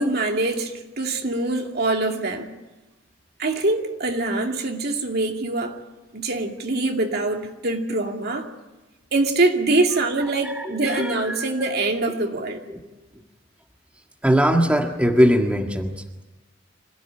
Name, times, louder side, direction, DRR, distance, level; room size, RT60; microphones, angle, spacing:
voice 1, 0.0-2.5 3.4-5.7 6.1-8.5 9.1-12.6, right 2 dB, 55° right, 3 dB, 2.5 m, -24 dB
voice 2, 10.2-11.5 12.4-12.8 14.2-16.2, equal, 5° right, 2 dB, 1.7 m, -22 dB
26.0 x 16.5 x 10.0 m, 1.1 s
head